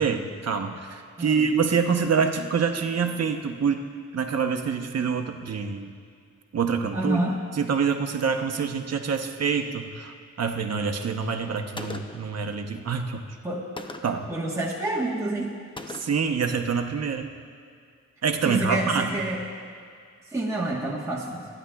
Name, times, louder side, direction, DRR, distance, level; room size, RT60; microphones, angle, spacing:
voice 1, 0.0-3.8 4.1-5.9 6.5-7.2 7.6-13.2 14.0-14.2 15.9-17.3 18.2-19.3, right 6 dB, 60° right, 5 dB, 0.8 m, -26 dB
voice 2, 6.9-7.4 13.4-13.6 14.3-15.5 18.4-19.4 20.3-21.5, right 1 dB, 10° right, -4 dB, 1.2 m, -28 dB
Gunshot gunfire, 11.8-12.4 13.8-14.3 15.8-16.3, left 2 dB, 15° left, 0.6 m, -39 dB
27.0 x 10.0 x 2.3 m, 2.2 s
wide cardioid pair, 105°, 29 cm